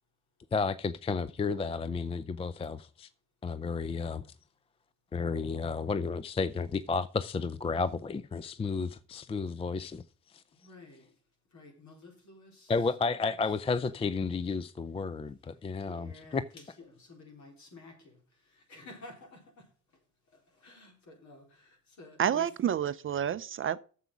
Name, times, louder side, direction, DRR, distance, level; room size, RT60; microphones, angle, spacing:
voice 1, 0.5-3.1 3.4-4.2 5.1-10.0 10.3-10.4 12.7-16.4, left 4 dB, 20° left, 0.4 m, -32 dB
voice 2, 10.6-11.1 11.5-12.7 13.2-13.3 13.8-14.1 15.8-18.2 18.6-19.4 20.3-22.5, left 3 dB, 60° left, 4.2 m, -51 dB
voice 3, 22.2-23.8, right 9 dB, 40° right, 0.5 m, -29 dB
7.6 x 7.2 x 6.1 m
supercardioid pair, 80°, 32 cm